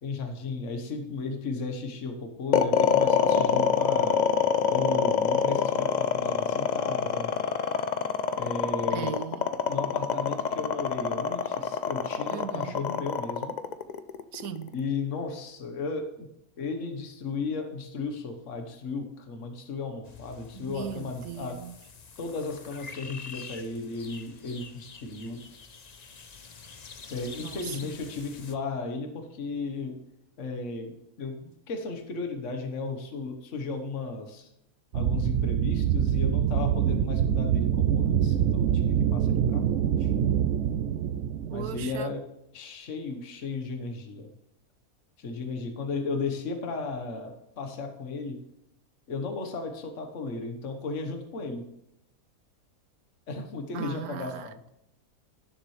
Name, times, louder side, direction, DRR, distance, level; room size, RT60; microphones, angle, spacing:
voice 1, 0.0-4.2 4.7-7.3 8.4-9.2 9.7-13.6 14.7-16.3 16.6-21.6 22.2-25.4 27.1-30.0 30.4-34.5 34.9-40.1 41.5-42.2 42.5-44.3 45.2-48.4 49.1-51.7 53.3-54.6, left 3 dB, 55° left, 1.5 m, -35 dB
sound 1, 2.5-14.8, left 7 dB, 80° left, 0.4 m, -25 dB
voice 2, 8.9-9.5 12.3-12.8 14.3-14.7 20.5-21.8 27.4-28.0 41.5-42.1 53.7-54.7, right 9 dB, 90° right, 1.2 m, -38 dB
sound 2, 20.0-28.5, left 5 dB, 40° left, 0.6 m, -47 dB
sound 3, 34.9-42.0, right 9 dB, 65° right, 0.8 m, -25 dB
17.5 x 7.3 x 3.3 m
omnidirectional pair, 1.5 m